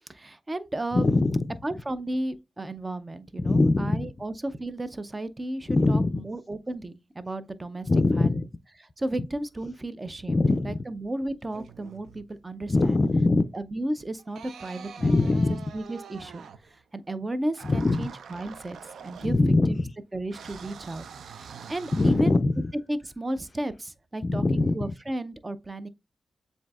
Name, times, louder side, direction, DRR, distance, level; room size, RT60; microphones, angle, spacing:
voice 1, 0.1-1.0 1.6-7.9 8.1-8.3 9.0-13.0 13.5-15.1 15.7-16.5 16.7-18.8 19.0-19.4 19.7-19.8 20.1-21.1 21.3-22.4 22.9-25.9, right 1 dB, 25° right, 0.5 m, -33 dB
voice 2, 0.9-1.6 3.4-4.1 5.7-6.2 7.9-8.5 10.3-10.8 12.7-13.4 15.0-15.6 17.6-18.1 19.2-19.9 21.9-22.7 24.2-24.9, left 2 dB, 40° left, 0.4 m, -22 dB
sound 1, 11.4-12.5 14.2-16.8 17.5-19.8 20.3-22.6, right 6 dB, 90° right, 0.4 m, -45 dB
7.3 x 2.6 x 2.3 m
cardioid pair, 70°, 0 cm